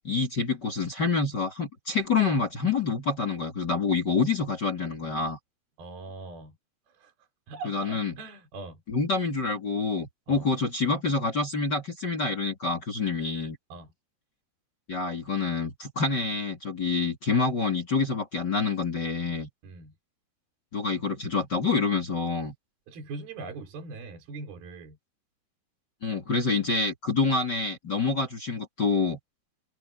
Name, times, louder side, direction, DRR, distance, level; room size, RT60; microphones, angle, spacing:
voice 1, 0.0-5.4 7.6-8.1 8.9-13.6 14.9-19.5 20.7-22.5 26.0-29.2, left 4 dB, 30° left, 2.9 m, -27 dB
voice 2, 5.8-6.6 6.9-7.1 7.5-8.8 10.3-10.5 13.7-13.9 19.6-19.9 22.9-25.0, right 3 dB, 70° right, 5.5 m, -41 dB
omnidirectional pair, 4.5 m